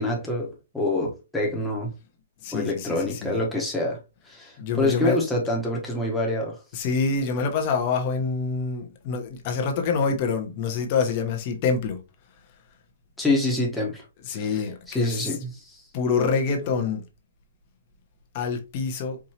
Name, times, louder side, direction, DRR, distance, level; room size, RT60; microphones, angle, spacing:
voice 1, 0.0-1.9 2.5-4.0 4.3-6.6 13.2-14.0 14.3-14.6 14.9-15.8, left 1 dB, 5° left, 1.1 m, -26 dB
voice 2, 2.4-3.4 4.6-5.2 6.7-12.0 14.2-15.3 15.9-17.0 18.3-19.2, left 5 dB, 35° left, 1.0 m, -26 dB
4.7 x 2.7 x 2.8 m
hypercardioid pair, 160°, 0 cm